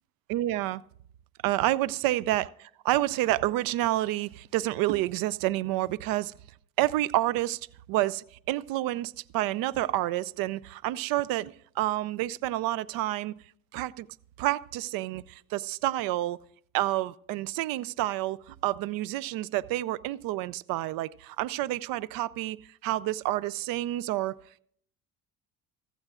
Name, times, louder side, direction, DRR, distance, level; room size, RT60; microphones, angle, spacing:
voice 1, 0.3-0.8 1.4-6.3 6.8-7.6 7.9-13.3 13.7-14.1 14.4-16.4 16.7-22.6 22.8-24.4, right 16 dB, 80° right, 0.5 m, -29 dB
15.5 x 14.5 x 2.4 m
cardioid pair, 90°, 34 cm